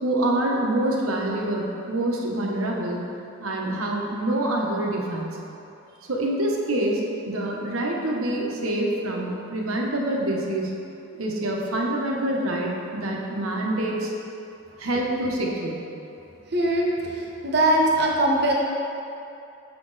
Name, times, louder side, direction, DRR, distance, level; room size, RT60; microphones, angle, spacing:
voice 1, 0.0-3.0 3.4-5.3 6.1-10.8 11.1-14.1 14.8-15.8, right 1 dB, 80° right, -1 dB, 1.0 m, -26 dB
voice 2, 16.5-16.9 17.4-18.5, right 1 dB, 50° right, -1 dB, 1.0 m, -20 dB
7.0 x 5.9 x 3.9 m, 2.8 s
head